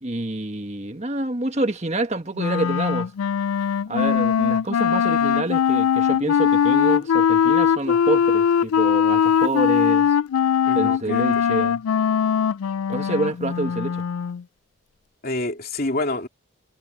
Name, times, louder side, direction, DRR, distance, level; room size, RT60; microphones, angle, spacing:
voice 1, 0.0-3.1 3.9-10.1 10.7-11.8 12.9-14.0, right 2 dB, 30° right, 1.5 m, -27 dB
Wind instrument woodwind instrument, 2.4-14.4, left 8 dB, 85° left, 0.4 m, -20 dB
voice 2, 10.6-11.2 15.2-16.3, left 2 dB, 45° left, 3.1 m, -27 dB
head